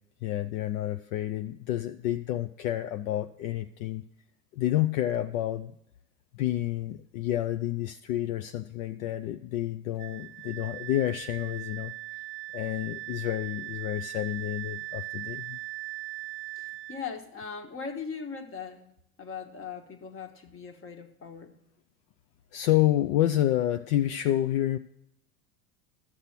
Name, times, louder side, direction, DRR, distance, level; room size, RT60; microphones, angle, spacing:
voice 1, 0.2-4.0 4.6-5.7 6.3-11.9 12.5-15.6 22.5-24.8, left 13 dB, 60° left, 0.6 m, -29 dB
Wind instrument woodwind instrument, 10.0-17.0, right 19 dB, 45° right, 0.8 m, -39 dB
voice 2, 16.6-18.8 19.2-21.6, left 6 dB, 25° left, 1.4 m, -39 dB
13.0 x 6.6 x 5.9 m
hypercardioid pair, 90°, 47 cm